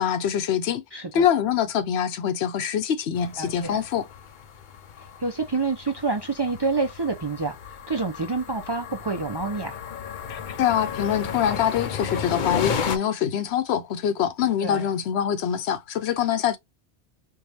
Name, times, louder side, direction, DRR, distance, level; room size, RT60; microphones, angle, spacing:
voice 1, 0.0-0.8 1.1-4.1 10.3-16.6, left 9 dB, 80° left, 0.9 m, -24 dB
voice 2, 0.9-1.3 3.4-3.7 5.2-9.8 14.6-14.8, right 3 dB, 35° right, 0.4 m, -28 dB
sound 1, 3.2-13.0, left 7 dB, 60° left, 0.6 m, -34 dB
4.6 x 2.3 x 2.7 m
omnidirectional pair, 1.1 m